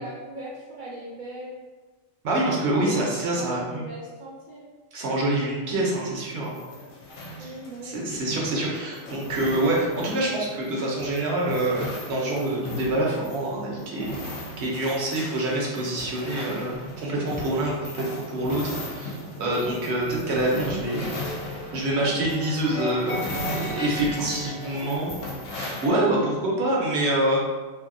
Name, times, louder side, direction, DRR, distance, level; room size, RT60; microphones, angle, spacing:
voice 1, 0.0-1.6 2.8-4.7 7.4-8.0 24.4-24.9, right 1 dB, 80° right, -7 dB, 0.4 m, -39 dB
voice 2, 2.2-3.8 4.9-6.5 7.4-7.5 7.8-14.2 14.6-21.1 21.7-23.2 23.5-25.1 25.5-27.4, right 1 dB, 60° right, -3 dB, 0.9 m, -26 dB
sound 1, 6.0-25.9, left 1 dB, 65° left, 0.9 m, -37 dB
sound 2, 19.5-25.0, left 1 dB, 5° left, 0.6 m, -36 dB
2.7 x 2.7 x 2.5 m, 1.3 s
omnidirectional pair, 1.4 m